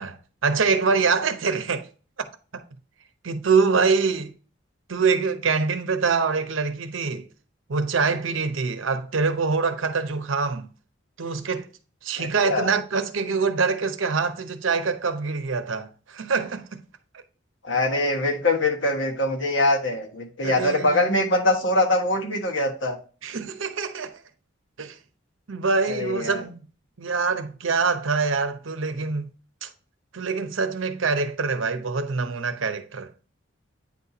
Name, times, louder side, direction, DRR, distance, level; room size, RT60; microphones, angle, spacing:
voice 1, 0.0-1.9 2.2-2.6 3.2-4.3 4.9-7.3 7.7-10.7 11.2-11.7 12.0-16.8 17.1-17.2 20.4-21.1 23.2-24.2 24.8-25.0 25.5-26.7 27.0-29.3 29.6-29.7 30.1-33.1, right 4 dB, 75° right, 0.7 m, -25 dB
voice 2, 12.2-12.7 17.6-23.0 25.9-26.4, left 2 dB, 70° left, 1.3 m, -23 dB
8.7 x 4.1 x 2.8 m
head